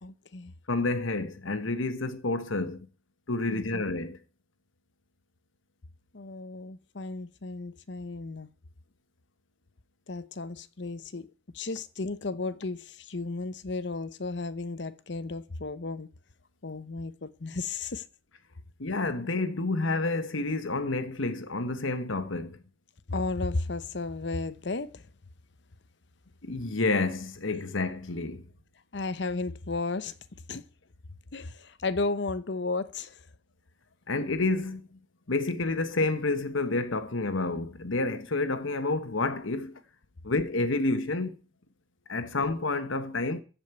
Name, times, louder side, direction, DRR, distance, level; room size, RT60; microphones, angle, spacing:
voice 1, 0.0-0.5 3.5-3.8 6.1-8.5 10.1-11.3 11.5-16.1 16.6-18.1 23.1-25.1 28.9-30.2 30.5-30.6 31.3-33.2, left 3 dB, 65° left, 0.8 m, -34 dB
voice 2, 0.7-2.9 3.3-4.2 18.8-22.6 26.4-28.4 34.1-35.0 35.3-39.8 40.2-41.4 42.1-43.4, left 2 dB, 90° left, 1.2 m, -29 dB
14.5 x 5.3 x 8.2 m
head